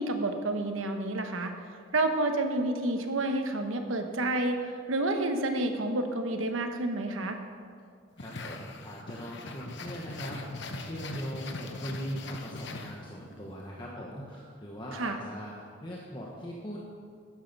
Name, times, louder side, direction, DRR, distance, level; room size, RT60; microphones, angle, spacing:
voice 1, 0.0-1.5 1.9-4.6 4.9-7.4 14.9-15.2, right 2 dB, 80° right, 5 dB, 1.2 m, -29 dB
sound 1, 8.2-13.4, left 2 dB, 60° left, 1.0 m, -41 dB
voice 2, 8.2-15.6 15.8-16.8, equal, 25° left, -4 dB, 1.2 m, -40 dB
12.5 x 9.5 x 5.4 m, 2.2 s
head